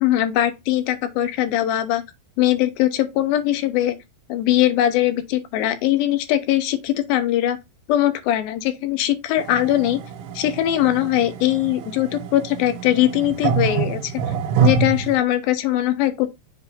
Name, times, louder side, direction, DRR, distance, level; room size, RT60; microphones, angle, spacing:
voice 1, 0.0-2.0 2.4-4.0 4.3-7.6 7.9-10.0 10.3-14.1 14.6-16.3, left 13 dB, 80° left, 2.3 m, -21 dB
sound 1, 9.4-15.2, right 6 dB, 85° right, 2.8 m, -26 dB
7.2 x 2.6 x 5.4 m
omnidirectional pair, 4.6 m